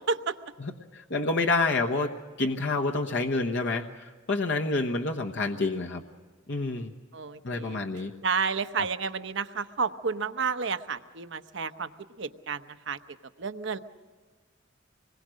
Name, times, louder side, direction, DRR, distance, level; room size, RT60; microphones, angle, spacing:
voice 1, 0.6-6.0 6.5-6.9 7.4-8.1, left 3 dB, 65° left, 2 dB, 1.2 m, -28 dB
voice 2, 7.1-7.8 8.2-11.9 12.2-13.0 13.4-13.8, right 5 dB, 65° right, 10 dB, 0.9 m, -31 dB
26.0 x 21.5 x 6.4 m, 1.4 s
head